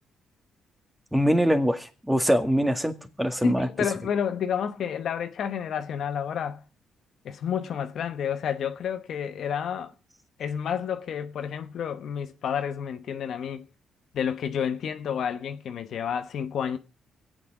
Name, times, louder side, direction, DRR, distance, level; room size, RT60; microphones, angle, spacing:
voice 1, 1.1-3.7, equal, 5° right, 1.9 m, -23 dB
voice 2, 3.4-6.6 7.2-9.9 10.4-13.7 14.1-16.8, left 8 dB, 65° left, 0.9 m, -30 dB
23.5 x 8.6 x 4.8 m
cardioid pair, 90°, 0 cm